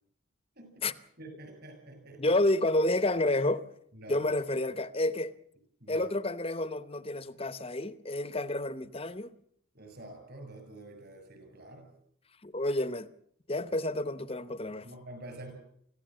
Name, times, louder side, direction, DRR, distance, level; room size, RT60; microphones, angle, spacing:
voice 1, 0.6-0.9 1.2-2.4 3.9-4.3 5.8-6.1 9.7-11.9 14.8-15.5, right 1 dB, 45° right, 7.3 m, -47 dB
voice 2, 2.2-3.7 4.1-5.3 5.9-9.4 12.4-13.1 13.5-14.9, left 2 dB, 25° left, 0.8 m, -30 dB
24.5 x 16.0 x 7.7 m
head